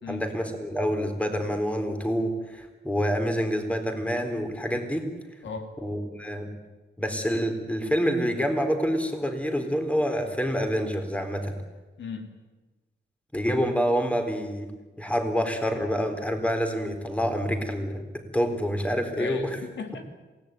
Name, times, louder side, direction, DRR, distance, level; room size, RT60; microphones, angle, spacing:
voice 1, 0.1-5.1 5.8-6.5 7.0-11.5 13.3-14.7 15.0-19.5, equal, 5° left, 6 dB, 4.0 m, -27 dB
voice 2, 5.4-5.7 12.0-12.3 19.2-20.0, left 5 dB, 80° left, 6 dB, 2.8 m, -36 dB
27.5 x 18.0 x 9.3 m, 1.2 s
wide cardioid pair, 110°, 19 cm